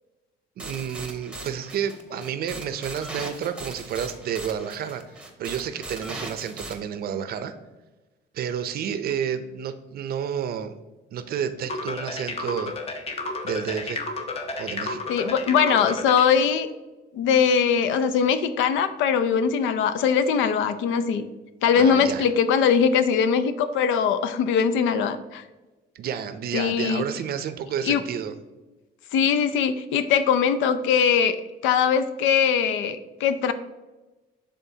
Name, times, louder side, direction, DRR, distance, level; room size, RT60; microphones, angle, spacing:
sound 1, 0.6-6.7, right 2 dB, 5° right, 0.8 m, -39 dB
voice 1, 0.6-7.5 8.3-10.8 11.1-12.7 13.4-14.0 14.6-15.0 21.7-22.3 25.9-28.3, right 8 dB, 50° right, 11 dB, 0.5 m, -30 dB
sound 2, 11.7-16.3, left 3 dB, 30° left, 0.7 m, -31 dB
voice 2, 15.1-16.7 17.1-21.2 21.6-25.4 26.5-27.0 27.8-28.0 29.1-31.4 31.6-33.5, left 7 dB, 85° left, 11 dB, 0.5 m, -21 dB
11.0 x 3.8 x 2.8 m, 1.2 s
cardioid pair, 145°, 19 cm